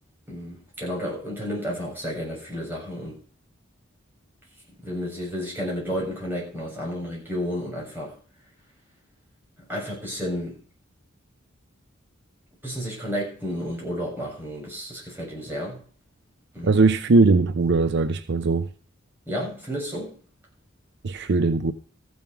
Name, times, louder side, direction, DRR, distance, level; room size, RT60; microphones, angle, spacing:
voice 1, 0.3-3.2 4.8-8.2 9.6-10.6 12.6-15.8 16.5-16.9 19.3-20.1, equal, 10° right, 6.8 m, -31 dB
voice 2, 16.6-18.7 21.0-21.7, right 3 dB, 55° right, 0.6 m, -20 dB
14.0 x 7.2 x 5.8 m
head